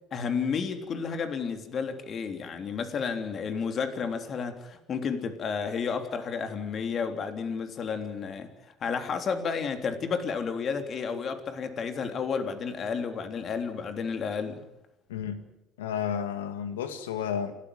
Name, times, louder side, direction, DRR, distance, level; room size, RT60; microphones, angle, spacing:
voice 1, 0.1-8.5 8.8-14.6, left 6 dB, 45° left, 7 dB, 3.3 m, -31 dB
voice 2, 15.1-15.4 15.8-17.5, left 8 dB, 80° left, 10 dB, 2.1 m, -32 dB
28.5 x 14.0 x 9.4 m, 0.91 s
hypercardioid pair, 65°, 0 cm